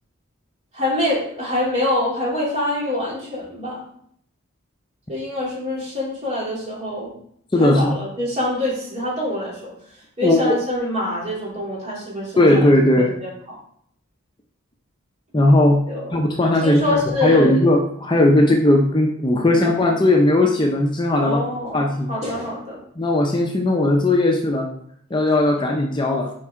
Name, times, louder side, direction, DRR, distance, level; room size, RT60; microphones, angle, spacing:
voice 1, 0.7-3.8 5.1-7.1 7.6-12.7 13.0-13.3 15.9-16.2 16.6-17.6 19.5-19.7 21.2-22.8, left 1 dB, 35° right, -6 dB, 2.9 m, -25 dB
voice 2, 7.5-8.0 10.2-10.5 12.4-13.2 15.3-15.8 16.1-21.4 21.7-22.1 23.0-24.7 25.1-26.3, left 1 dB, 25° left, 1 dB, 0.6 m, -17 dB
7.5 x 4.7 x 3.7 m, 0.68 s
head